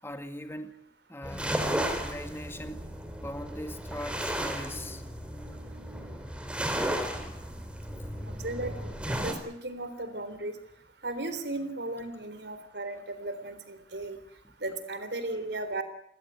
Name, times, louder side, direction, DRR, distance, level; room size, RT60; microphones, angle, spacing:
voice 1, 0.0-0.8 1.1-1.6 2.0-2.9 3.2-5.0 7.3-8.1 14.4-14.5, left 1 dB, 15° left, 2.0 m, -41 dB
sound 1, 1.2-9.3, equal, 5° right, 3.9 m, -34 dB
voice 2, 8.3-10.6 11.0-14.2 14.6-15.8, right 2 dB, 75° right, 3.6 m, -36 dB
28.5 x 16.0 x 9.4 m
head